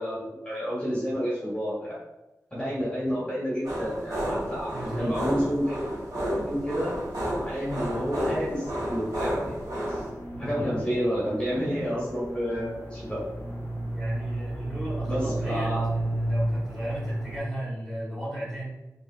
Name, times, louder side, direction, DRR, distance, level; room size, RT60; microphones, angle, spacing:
voice 1, 0.0-2.0 2.5-5.8 6.5-7.0 7.4-9.5 9.9-10.0 10.4-13.2 15.0-15.9, equal, 15° left, -8 dB, 1.4 m, -30 dB
sound 1, 3.6-10.1, equal, 90° right, 1.4 m, -31 dB
voice 2, 4.7-5.1 10.3-10.7 13.9-18.6, right 1 dB, ahead, -8 dB, 1.5 m, -35 dB
sound 2, 6.8-17.4, right 1 dB, 45° left, 1.0 m, -34 dB
3.5 x 3.2 x 2.4 m, 1.0 s
wide cardioid pair, 85°, 6 cm